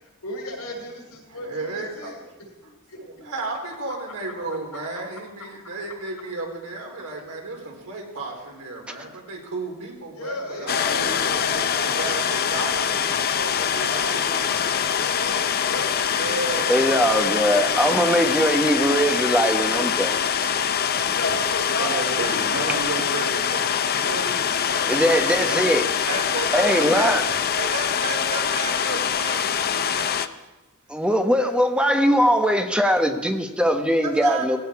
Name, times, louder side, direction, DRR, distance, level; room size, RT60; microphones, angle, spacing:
voice 1, 0.2-2.2 2.9-3.0 4.9-5.0 10.1-16.3 17.1-17.6 17.9-18.2 21.0-22.8 23.9-25.6, left 1 dB, 85° left, 0 dB, 6.6 m, -35 dB
voice 2, 1.3-2.4 3.0-13.0 13.5-14.6 16.2-16.8 21.0-21.3 21.8-23.8 25.3-25.7 26.1-27.2 27.5-30.5 34.0-34.6, right 3 dB, 90° right, 0 dB, 4.3 m, -33 dB
sound 1, 10.7-30.3, left 8 dB, 45° left, 0.6 m, -24 dB
voice 3, 16.7-20.2 24.9-25.9 26.5-27.2 30.9-34.6, equal, 5° right, 5 dB, 1.1 m, -20 dB
18.0 x 16.5 x 4.8 m, 1.1 s
head